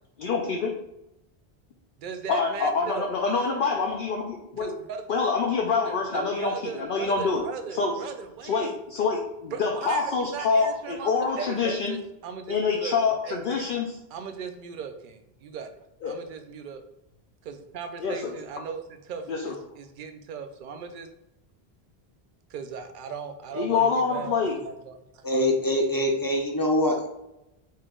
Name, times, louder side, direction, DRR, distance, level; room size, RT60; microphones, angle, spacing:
voice 1, 0.2-0.7 2.3-4.7 5.1-7.4 7.7-8.0 8.4-12.0 12.5-14.0 16.0-16.2 18.0-18.3 19.3-19.5 23.5-24.6, left 4 dB, 65° left, 0 dB, 0.7 m, -26 dB
voice 2, 2.0-3.1 4.5-5.1 5.9-8.7 9.5-11.1 11.4-13.0 13.2-13.7 14.1-15.7 16.0-16.8 17.4-21.1 22.5-24.4 24.6-25.4, right 6 dB, 60° right, 7 dB, 0.7 m, -38 dB
voice 3, 25.2-27.1, left 1 dB, 25° left, 1 dB, 0.5 m, -24 dB
4.4 x 2.9 x 3.6 m, 0.88 s
omnidirectional pair, 1.0 m